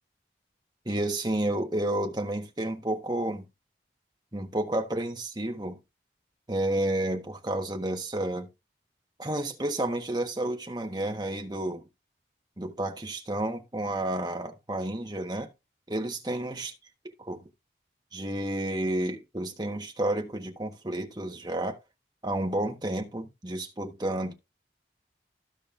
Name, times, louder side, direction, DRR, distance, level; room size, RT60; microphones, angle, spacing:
voice 1, 0.8-3.4 4.3-5.8 6.5-8.5 9.2-11.9 12.6-15.5 15.9-16.7 17.3-17.4 18.1-21.8 22.2-24.3, right 1 dB, 25° right, 1.3 m, -31 dB
15.0 x 5.3 x 2.6 m
head